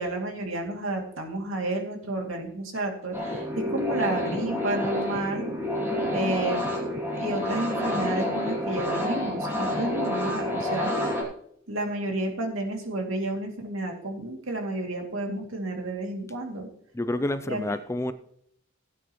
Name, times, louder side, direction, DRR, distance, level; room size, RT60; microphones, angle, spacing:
voice 1, 0.0-5.4 6.1-6.7 7.1-10.9 11.7-16.7 17.5-17.8, right 2 dB, 75° right, 2.5 m, -31 dB
sound 1, 3.1-11.2, left 1 dB, 10° right, 2.6 m, -28 dB
voice 2, 16.9-18.1, left 1 dB, 15° left, 0.4 m, -28 dB
17.0 x 9.1 x 3.1 m
head